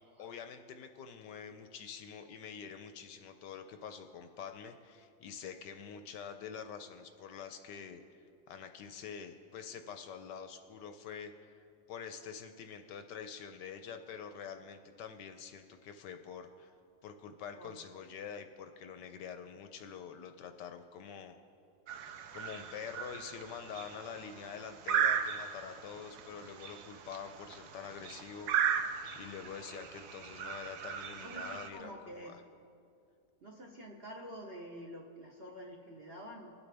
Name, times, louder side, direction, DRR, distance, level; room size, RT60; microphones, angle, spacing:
voice 1, 0.2-11.5 11.9-16.7 17.0-21.3 22.3-28.5 29.1-32.4, left 7 dB, 75° left, 7 dB, 1.1 m, -46 dB
sound 1, 21.9-31.7, right 8 dB, 65° right, 1.1 m, -37 dB
voice 2, 31.2-32.4 33.4-36.5, equal, 45° right, 0 dB, 0.8 m, -48 dB
21.0 x 8.4 x 3.4 m, 2.5 s
omnidirectional pair, 2.1 m